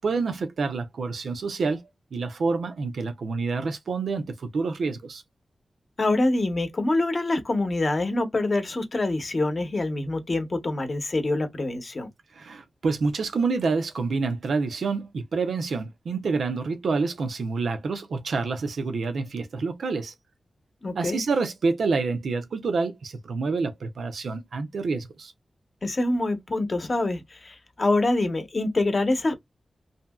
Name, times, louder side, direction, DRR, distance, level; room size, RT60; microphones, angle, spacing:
voice 1, 0.0-1.8 2.1-5.2 12.4-20.1 20.9-25.3, right 4 dB, 85° right, 0.6 m, -27 dB
voice 2, 6.0-12.1 20.8-21.2 25.8-29.3, left 2 dB, 40° left, 0.7 m, -25 dB
2.7 x 2.6 x 2.2 m
wide cardioid pair, 110°, 0 cm